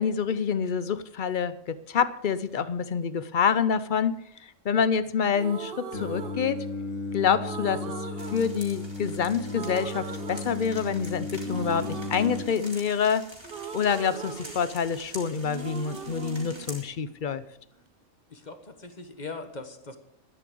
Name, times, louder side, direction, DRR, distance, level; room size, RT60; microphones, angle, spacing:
voice 1, 0.0-6.7 7.1-13.3 13.7-17.4, left 7 dB, 50° left, 16 dB, 0.6 m, -27 dB
sound 1, 5.3-7.0 7.4-9.2 9.5-11.1 11.4-15.1 15.4-17.5, right 6 dB, 50° right, 1.0 m, -40 dB
Singing, 5.9-12.4, left 3 dB, 85° left, 2.0 m, -35 dB
sound 2, 8.2-16.8, right 1 dB, 20° right, 3.1 m, -46 dB
voice 2, 18.3-20.0, left 3 dB, 35° left, 8 dB, 1.4 m, -41 dB
12.0 x 9.9 x 7.7 m, 0.77 s
omnidirectional pair, 1.3 m